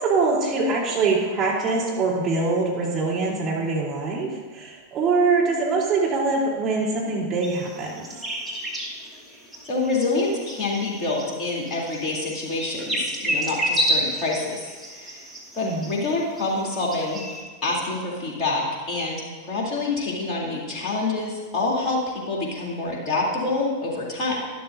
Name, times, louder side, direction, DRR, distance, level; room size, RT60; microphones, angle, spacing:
voice 1, 0.0-8.2 15.6-16.0, right 3 dB, 30° right, -4 dB, 3.3 m, -24 dB
sound 1, 7.4-17.4, equal, ahead, 1.7 m, -31 dB
voice 2, 9.6-15.3 15.5-17.2 17.6-24.4, left 3 dB, 30° left, -3 dB, 3.1 m, -27 dB
12.0 x 12.0 x 2.7 m, 1.5 s
figure-of-eight pair, 90°, 0 cm